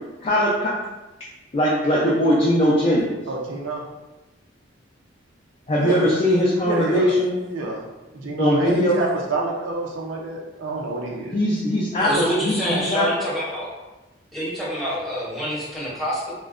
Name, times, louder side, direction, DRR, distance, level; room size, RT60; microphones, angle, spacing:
voice 1, 0.2-0.8 1.5-3.2 5.7-7.4 8.4-9.0 11.3-13.1, equal, 35° left, -5 dB, 0.4 m, -20 dB
voice 2, 3.3-3.8 5.8-6.1 6.6-7.1 7.5-7.8 8.1-11.4, right 2 dB, 85° right, -2 dB, 0.5 m, -28 dB
voice 3, 12.0-13.7 14.3-16.3, equal, ahead, -7 dB, 0.8 m, -26 dB
3.7 x 2.1 x 2.4 m, 1.1 s
head